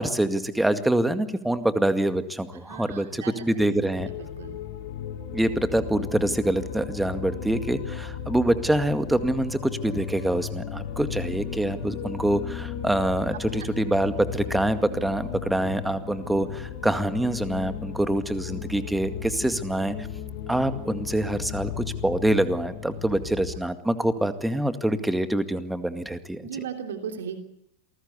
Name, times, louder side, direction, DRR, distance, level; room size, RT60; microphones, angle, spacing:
voice 1, 0.0-4.1 5.3-20.1 20.5-26.4, right 1 dB, 5° right, 10 dB, 2.0 m, -25 dB
voice 2, 2.7-3.5 4.2-4.6 23.5-23.6 26.4-27.4, right 7 dB, 60° right, 5 dB, 3.0 m, -36 dB
sound 1, 3.9-23.6, left 8 dB, 50° left, 2.6 m, -35 dB
27.5 x 19.5 x 8.4 m, 0.78 s
figure-of-eight pair, 90°, 0 cm